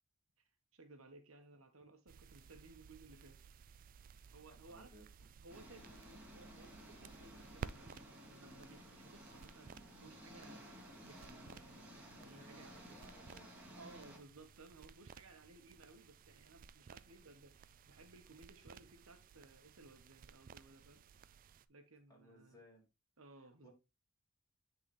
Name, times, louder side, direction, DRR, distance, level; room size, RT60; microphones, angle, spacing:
voice 1, 0.7-3.6 4.0-4.9 5.4-10.6 11.0-12.8 13.8-21.0 21.7-22.6 23.2-23.7, right 2 dB, 65° right, 1.2 m, -60 dB
sound 1, 2.1-21.7, right 6 dB, 40° right, 0.3 m, -57 dB
voice 2, 4.5-5.1 12.2-13.5 22.1-22.9 23.6-23.7, equal, 20° left, 3.3 m, -61 dB
Engine, 5.5-14.2, equal, 10° right, 2.2 m, -56 dB
10.0 x 4.1 x 3.2 m
head